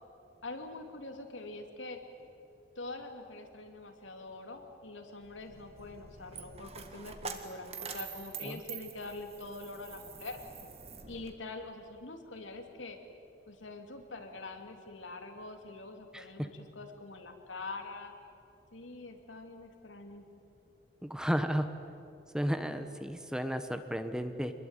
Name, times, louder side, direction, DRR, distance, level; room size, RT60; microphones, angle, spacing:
voice 1, 0.4-2.0 2.7-10.4 11.1-13.0 13.5-18.1 18.7-20.3, left 2 dB, 85° left, 4 dB, 3.1 m, -44 dB
Coin (dropping), 5.2-11.3, right 5 dB, 30° right, 1.8 m, -45 dB
voice 2, 21.0-21.7 22.3-24.5, equal, 5° right, 9 dB, 1.1 m, -33 dB
27.5 x 21.0 x 9.2 m, 2.7 s
head